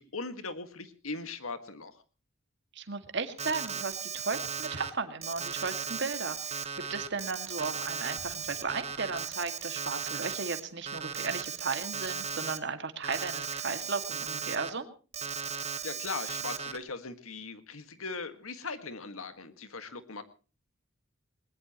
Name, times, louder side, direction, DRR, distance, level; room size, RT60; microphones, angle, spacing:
voice 1, 0.0-1.9 15.8-20.2, left 4 dB, 85° left, 10 dB, 1.8 m, -39 dB
voice 2, 2.7-6.6 6.9-14.9, right 4 dB, 55° right, 7 dB, 2.1 m, -35 dB
Alarm, 3.4-4.9 5.2-10.6 10.9-12.6 13.0-14.7 15.1-16.8, right 6 dB, 30° right, 1.3 m, -36 dB
Explosion, 8.2-9.8, equal, 55° left, 7.8 m, -58 dB
20.5 x 20.5 x 3.0 m, 0.36 s
head